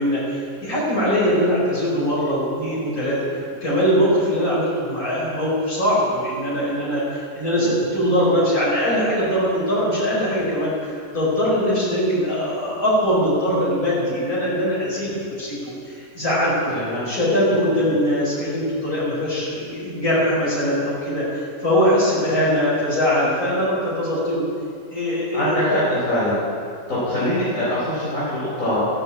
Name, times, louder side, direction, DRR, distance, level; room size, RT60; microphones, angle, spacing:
voice 1, 0.0-3.2 3.6-16.7 17.0-24.4 24.9-25.8, equal, 80° left, -9 dB, 5.6 m, -21 dB
voice 2, 16.7-17.1 25.3-26.4 26.9-28.8, left 1 dB, 65° left, -10 dB, 4.7 m, -23 dB
15.0 x 9.8 x 8.4 m, 2.3 s
omnidirectional pair, 1.5 m